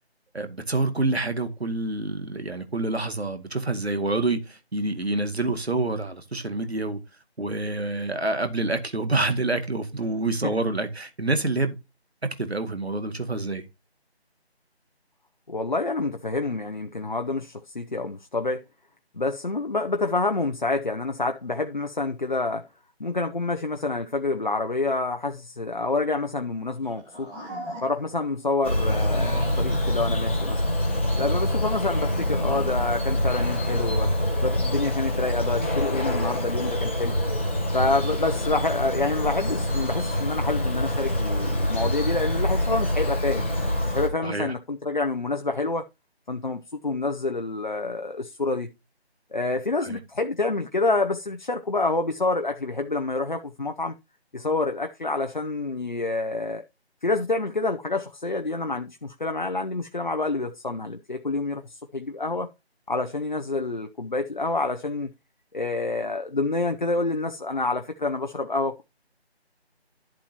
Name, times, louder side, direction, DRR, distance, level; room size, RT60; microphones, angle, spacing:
voice 1, 0.3-7.0 7.4-11.8 12.2-13.6 44.2-44.5 49.8-50.0, right 2 dB, 70° right, 2.2 m, -27 dB
voice 2, 15.5-18.6 19.1-22.7 23.0-27.3 27.8-30.6 31.2-34.1 34.4-37.2 37.7-43.4 43.9-45.8 46.3-48.7 49.3-53.9 54.3-56.6 57.0-62.5 62.9-65.1 65.5-68.8, left 3 dB, 45° left, 0.8 m, -27 dB
sound 1, 26.8-28.2 28.7-30.3, right 1 dB, 5° right, 1.4 m, -39 dB
Bird vocalization bird call bird song, 28.6-44.1, left 1 dB, 10° left, 1.1 m, -25 dB
12.0 x 7.4 x 2.9 m
figure-of-eight pair, 160°, 33 cm